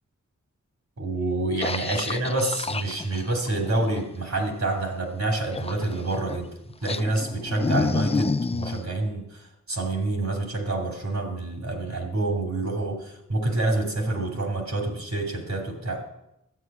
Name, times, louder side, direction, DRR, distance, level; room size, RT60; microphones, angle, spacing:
voice 1, 1.0-6.5 6.8-16.0, right 2 dB, 60° right, 2 dB, 2.8 m, -27 dB
sound 1, 1.6-4.0 5.5-6.4 6.8-8.8, left 4 dB, 20° left, 0.3 m, -29 dB
11.5 x 8.4 x 6.0 m, 0.86 s
wide cardioid pair, 75°, 31 cm